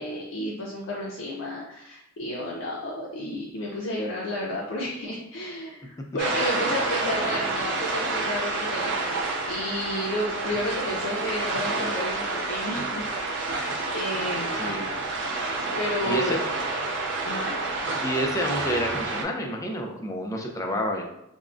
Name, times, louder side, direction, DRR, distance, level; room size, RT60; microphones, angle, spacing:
voice 1, 0.0-15.3 15.8-16.4 17.2-17.6 20.3-20.4, left 1 dB, 85° left, -4 dB, 0.5 m, -32 dB
sound 1, 6.2-19.2, right 3 dB, 60° right, 0.5 m, -29 dB
voice 2, 16.1-16.4 18.0-21.0, equal, 15° left, 1 dB, 0.4 m, -29 dB
3.5 x 2.1 x 2.4 m, 0.83 s
head